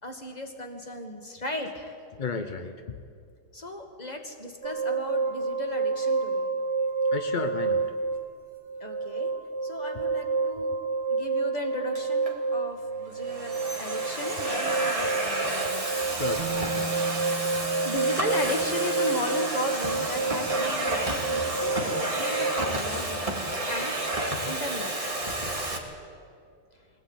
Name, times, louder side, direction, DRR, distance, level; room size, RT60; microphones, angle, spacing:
voice 1, 0.0-2.0 3.5-6.5 8.8-9.3 9.6-10.7 11.1-15.8 17.4-23.2 23.7-23.9 24.4-24.9 25.3-25.4, left 1 dB, 20° left, 4 dB, 2.0 m, -36 dB
voice 2, 2.1-3.0 7.1-7.9 16.1-17.0 17.5-17.6, left 4 dB, 50° left, 7 dB, 0.5 m, -34 dB
sound 1, 4.6-22.6, right 4 dB, 55° right, 2.7 m, -29 dB
Domestic sounds home sounds, 11.9-12.3 13.1-25.8, right 1 dB, 15° right, 2.2 m, -31 dB
Bass guitar, 16.4-20.3 21.5-21.6, right 2 dB, 80° right, 2.4 m, -40 dB
22.5 x 17.0 x 9.1 m, 2.2 s
omnidirectional pair, 2.3 m